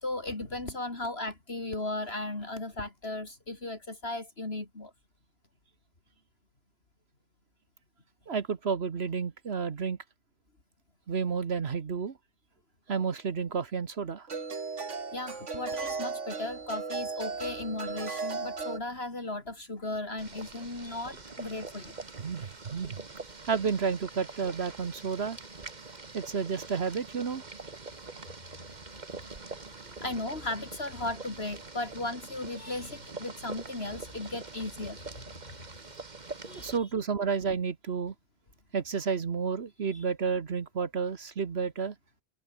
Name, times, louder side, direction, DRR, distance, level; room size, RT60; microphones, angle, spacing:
voice 1, 0.0-4.9 15.1-22.0 28.6-28.7 29.2-35.6 36.5-36.8, left 2 dB, 55° left, 3.8 m, -36 dB
voice 2, 8.3-10.0 11.1-12.2 12.9-14.3 22.2-23.0 23.5-25.4 26.1-27.4 36.5-38.1 38.7-41.9, right 6 dB, 60° right, 1.4 m, -31 dB
sound 1, 12.9-13.0 14.3-18.8, right 4 dB, 85° right, 2.5 m, -36 dB
Boiling, 20.2-36.8, right 3 dB, 40° right, 1.9 m, -44 dB
omnidirectional pair, 1.2 m